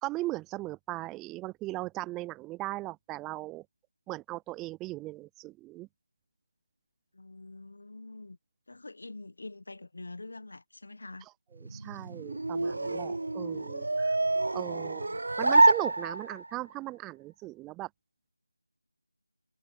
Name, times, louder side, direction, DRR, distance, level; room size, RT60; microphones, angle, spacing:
voice 1, 0.0-3.7 4.1-5.9 11.6-14.1 14.5-15.1 15.4-17.9, right 18 dB, 10° right, 0.5 m, -38 dB
voice 2, 7.1-8.4 8.7-11.3 14.9-15.2, left 2 dB, 60° left, 1.5 m, -45 dB
sound 1, 11.6-16.6, right 2 dB, 60° right, 0.7 m, -27 dB
figure-of-eight pair, 165°, 0 cm